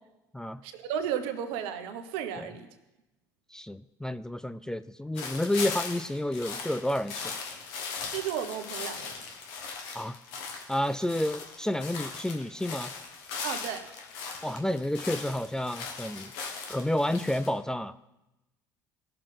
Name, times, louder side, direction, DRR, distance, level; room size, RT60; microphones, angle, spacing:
voice 1, 0.6-2.7 8.1-9.1 13.4-13.8, right 9 dB, 75° right, 9 dB, 1.0 m, -33 dB
voice 2, 3.5-7.4 9.9-10.2 10.7-12.9 14.4-16.3 16.7-17.9, left 1 dB, 5° left, 13 dB, 0.4 m, -30 dB
sound 1, 5.1-17.5, left 5 dB, 75° left, 1.6 m, -39 dB
17.5 x 6.7 x 3.8 m, 1.0 s
hypercardioid pair, 65°, 10 cm